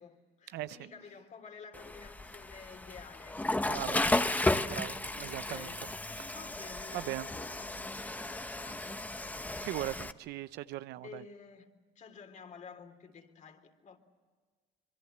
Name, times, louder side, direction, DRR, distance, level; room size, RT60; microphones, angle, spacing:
voice 1, 0.0-4.8 5.2-9.0 9.5-9.9 10.4-10.5 11.0-11.7 11.9-14.0, left 6 dB, 45° left, 3.4 m, -52 dB
Water / Toilet flush, 1.7-10.1, left 2 dB, 10° left, 0.9 m, -34 dB
voice 2, 3.7-4.0 4.7-5.7 6.2-6.4 6.9-7.3 9.6-11.2, right 15 dB, 80° right, 0.7 m, -39 dB
25.5 x 23.5 x 8.0 m
cardioid pair, 110°, 17 cm